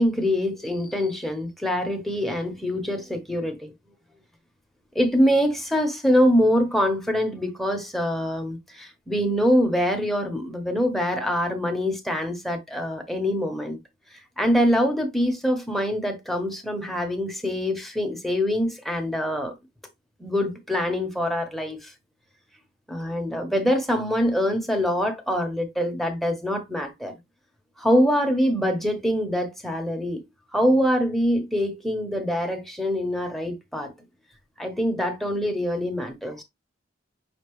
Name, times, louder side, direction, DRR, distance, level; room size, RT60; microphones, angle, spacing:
voice 1, 0.0-3.7 4.9-13.8 14.4-19.5 20.2-21.9 22.9-27.1 27.8-30.2 30.5-33.9 34.6-36.4, equal, ahead, 1.1 m, -24 dB
5.9 x 2.7 x 3.1 m
head